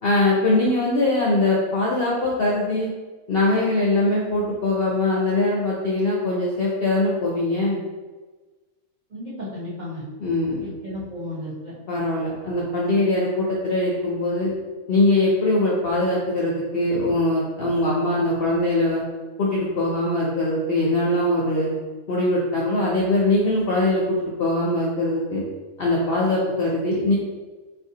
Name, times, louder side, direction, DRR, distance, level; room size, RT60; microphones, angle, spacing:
voice 1, 0.0-2.9 3.3-7.8 10.2-10.7 11.9-14.5 14.9-19.0 19.4-21.7 22.1-25.4 25.8-27.1, left 2 dB, 60° left, -4 dB, 0.6 m, -22 dB
voice 2, 9.1-10.0 10.6-11.7, left 1 dB, 40° right, -8 dB, 0.8 m, -34 dB
3.9 x 2.5 x 2.7 m, 1.3 s
omnidirectional pair, 1.5 m